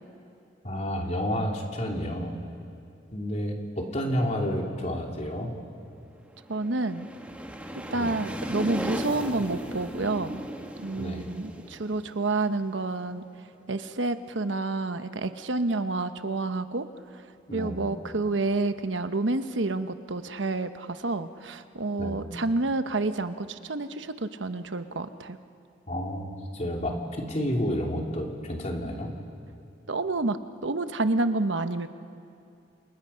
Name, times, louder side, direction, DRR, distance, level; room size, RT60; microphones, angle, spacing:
voice 1, 0.6-2.4 3.1-5.5 7.9-8.2 11.0-11.3 17.5-17.9 22.0-22.3 25.9-29.1, equal, 35° left, 1 dB, 3.1 m, -30 dB
sound 1, 6.3-13.1, equal, 10° right, 1.7 m, -37 dB
voice 2, 6.5-7.1 7.9-10.4 10.8-13.2 13.7-16.9 17.5-25.4 29.9-31.9, right 2 dB, 75° right, 10 dB, 1.0 m, -29 dB
29.5 x 28.0 x 5.8 m, 2.6 s
head